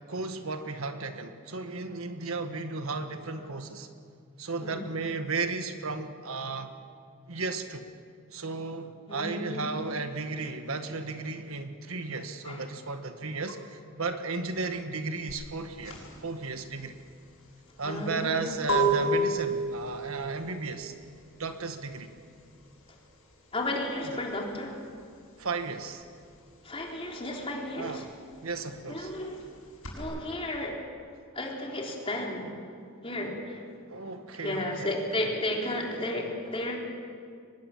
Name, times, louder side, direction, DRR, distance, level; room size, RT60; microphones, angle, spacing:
voice 1, 0.1-3.9 4.4-6.7 7.3-7.8 8.3-17.0 17.8-20.9 21.4-22.1 25.4-26.0 27.8-28.1 28.4-29.1 33.9-34.9, right 3 dB, 70° right, 7 dB, 1.6 m, -34 dB
voice 2, 9.1-9.8 12.4-12.6 17.8-19.0 23.5-24.8 26.6-28.0 28.9-29.4 29.9-30.8 31.3-32.5 33.0-33.6 34.4-36.8, left 1 dB, 25° left, -1 dB, 3.8 m, -33 dB
sound 1, 15.3-25.5 25.8-30.0, right 2 dB, 70° left, 7.3 m, -32 dB
24.0 x 20.0 x 7.4 m, 2.3 s
head